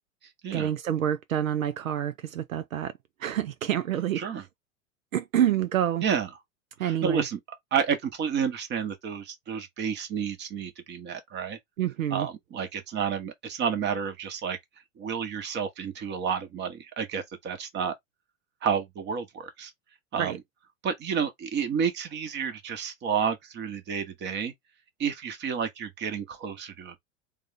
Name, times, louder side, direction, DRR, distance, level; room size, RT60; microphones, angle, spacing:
voice 1, 0.5-2.9 3.2-4.2 5.1-6.0 6.8-7.2 11.8-12.3 20.2-20.4, right 10 dB, 75° right, 0.5 m, -27 dB
voice 2, 6.8-7.4 7.7-11.6 12.1-14.6 15.0-17.9 18.6-19.7 20.1-20.4 20.8-24.5 25.0-27.0, right 7 dB, 25° right, 1.0 m, -30 dB
3.6 x 2.3 x 3.5 m
figure-of-eight pair, 90°, 41 cm